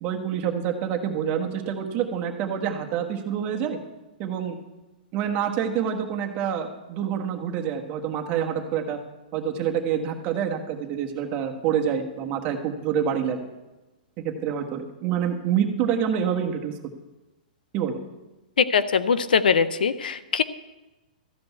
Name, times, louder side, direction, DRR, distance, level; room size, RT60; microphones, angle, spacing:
voice 1, 0.0-3.8 4.2-4.6 5.1-9.0 9.3-13.4 14.2-16.7 17.7-18.0, right 8 dB, 35° right, 3 dB, 1.3 m, -27 dB
voice 2, 18.6-20.4, left 6 dB, 90° left, 14 dB, 0.6 m, -21 dB
13.5 x 5.3 x 8.2 m, 1.1 s
hypercardioid pair, 140°, 5 cm